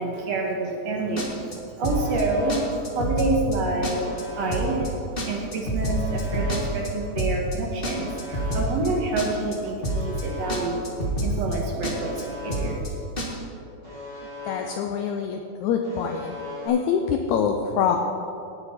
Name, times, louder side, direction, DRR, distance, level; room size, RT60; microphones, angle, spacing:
voice 1, 0.0-4.0 4.4-4.9 5.3-10.8 11.2-12.8 13.2-13.3, right 2 dB, 60° right, 0 dB, 2.0 m, -28 dB
sound 1, 1.2-1.5 1.8-2.2 2.5-2.6 2.8-3.5 3.8-4.2 4.5-4.9 5.2-6.9 7.2-7.5 7.8-8.9 9.2-9.5 9.8-10.2 10.5-10.6 10.8-11.5 11.8-12.2 12.5-12.9 13.2-13.3, right 1 dB, 50° left, 0.6 m, -27 dB
Alarm, 1.8-2.7 3.8-4.7 5.8-6.7 7.8-8.7 9.8-10.7 11.8-12.7 13.8-14.7 15.8-16.7, left 2 dB, 30° right, 3.4 m, -38 dB
voice 2, 14.5-16.3 16.7-18.0, left 7 dB, 75° left, 4 dB, 1.8 m, -25 dB
18.0 x 8.2 x 4.2 m, 2.7 s
omnidirectional pair, 3.9 m